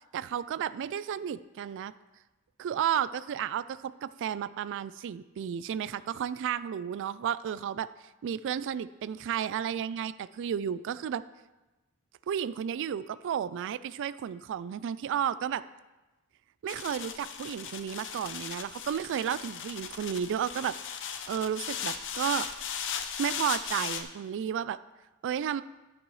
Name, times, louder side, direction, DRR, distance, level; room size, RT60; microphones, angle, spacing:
voice 1, 0.1-1.9 2.6-7.9 8.2-11.2 12.3-15.6 16.6-20.7 21.3-22.5 23.2-24.8 25.2-25.6, right 8 dB, 60° right, 16 dB, 0.3 m, -32 dB
sound 1, 16.7-24.0, left 7 dB, 60° left, 0.7 m, -37 dB
12.0 x 8.3 x 3.1 m, 1.1 s
head